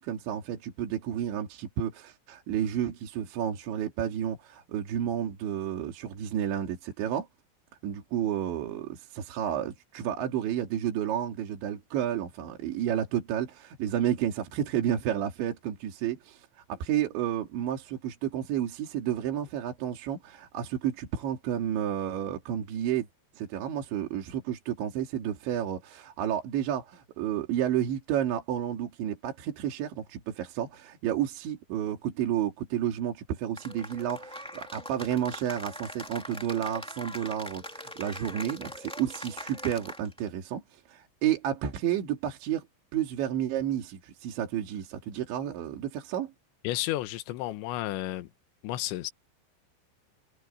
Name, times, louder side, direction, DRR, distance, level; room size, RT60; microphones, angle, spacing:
voice 1, 0.0-7.3 7.8-23.1 23.4-42.6 42.9-46.3, right 10 dB, 75° right, 4.8 m, -31 dB
Cheering / Applause, 33.6-40.3, equal, 5° left, 0.7 m, -42 dB
voice 2, 46.6-48.3 48.6-49.1, left 15 dB, 75° left, 3.4 m, -32 dB
omnidirectional pair, 5.4 m